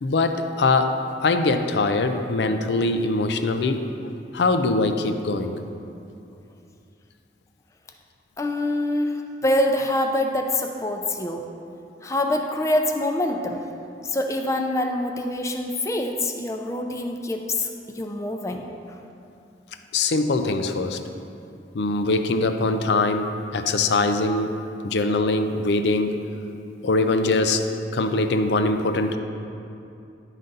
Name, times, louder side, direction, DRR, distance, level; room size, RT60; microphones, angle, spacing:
voice 1, 0.0-3.9 4.3-5.6 19.9-21.0 21.7-24.5 24.8-26.2 26.8-27.6 27.9-29.2, left 3 dB, 75° left, 7 dB, 0.4 m, -22 dB
voice 2, 8.4-11.5 12.0-13.6 14.1-18.6, left 1 dB, 15° left, 3 dB, 0.4 m, -25 dB
10.5 x 4.0 x 3.9 m, 2.6 s
head